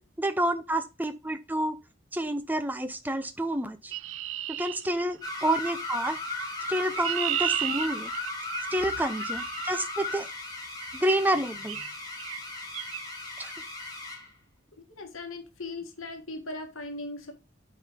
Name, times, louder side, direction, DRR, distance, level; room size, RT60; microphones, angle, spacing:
voice 1, 0.2-1.8 2.1-3.9 4.6-6.2 6.7-8.1 8.7-10.3 11.0-11.8 13.4-13.5, right 1 dB, 10° right, 0.6 m, -29 dB
Chirp tweet, 3.9-5.5 6.6-9.7 10.8-11.1 11.7-11.9 12.2-12.4 12.7-13.0, right 12 dB, 75° right, 0.4 m, -34 dB
sound 1, 5.2-14.3, left 2 dB, 20° left, 1.6 m, -36 dB
voice 2, 15.0-17.3, left 2 dB, 85° left, 1.5 m, -38 dB
9.3 x 3.9 x 5.2 m
head